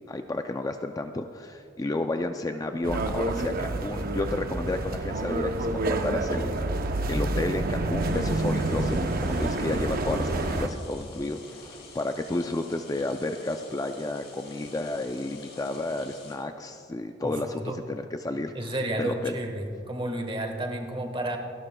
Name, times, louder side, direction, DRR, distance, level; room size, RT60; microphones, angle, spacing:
voice 1, 0.1-19.3, left 2 dB, 20° left, 6 dB, 0.4 m, -32 dB
sound 1, 2.8-10.7, right 2 dB, 50° right, 0.7 m, -28 dB
sound 2, 8.0-16.4, left 3 dB, 60° left, 3.4 m, -47 dB
voice 2, 17.2-17.8 18.5-21.4, right 1 dB, 25° right, 3 dB, 1.4 m, -31 dB
29.5 x 11.5 x 2.3 m, 2.7 s
head